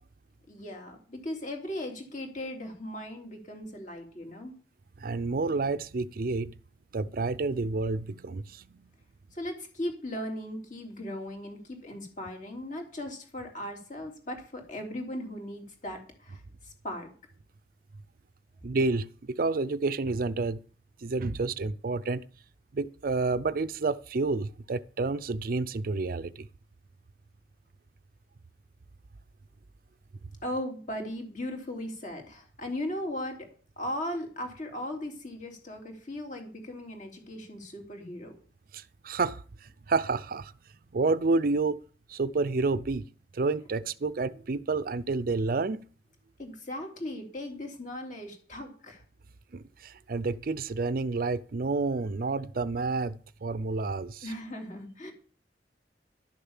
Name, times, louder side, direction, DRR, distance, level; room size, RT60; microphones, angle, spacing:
voice 1, 0.5-4.5 9.3-17.1 30.4-38.4 46.4-49.0 54.2-55.1, left 1 dB, 45° left, 3.2 m, -38 dB
voice 2, 5.0-6.5 6.9-8.8 18.6-20.6 21.0-22.2 22.7-26.5 38.7-40.5 40.9-41.8 42.1-43.0 43.3-45.9 49.5-54.3, right 3 dB, 55° right, 0.5 m, -29 dB
12.0 x 6.9 x 7.3 m
head